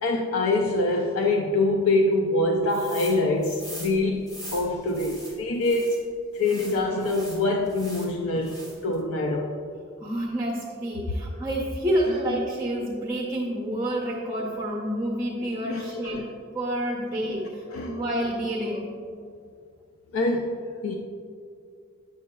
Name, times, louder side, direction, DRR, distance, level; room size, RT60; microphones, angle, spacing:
voice 1, 0.0-6.0 6.3-8.6 8.8-9.5 15.6-16.2 17.7-18.0 20.1-20.9, left 2 dB, 80° left, 2 dB, 0.4 m, -25 dB
sound 1, 2.7-3.2 3.4-6.0 6.4-8.1 8.4-9.0, right 1 dB, 20° left, 1.1 m, -42 dB
voice 2, 10.0-18.9, right 1 dB, 15° right, -3 dB, 0.6 m, -29 dB
9.2 x 6.4 x 2.2 m, 2.3 s
head